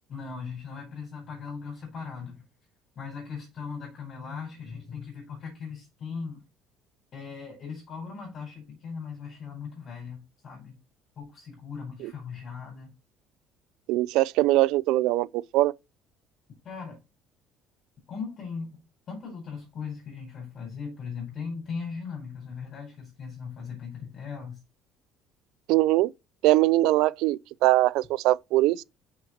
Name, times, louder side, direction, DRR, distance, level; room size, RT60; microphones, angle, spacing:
voice 1, 0.1-2.4 2.9-6.4 7.1-10.8 11.2-12.9 16.6-17.0 18.1-18.8 19.1-24.6, left 5 dB, 40° left, 4.8 m, -38 dB
voice 2, 13.9-15.3 15.5-15.7 25.7-26.1 26.4-28.8, right 17 dB, 80° right, 0.3 m, -22 dB
6.4 x 6.4 x 4.2 m
cardioid pair, 135°, 0 cm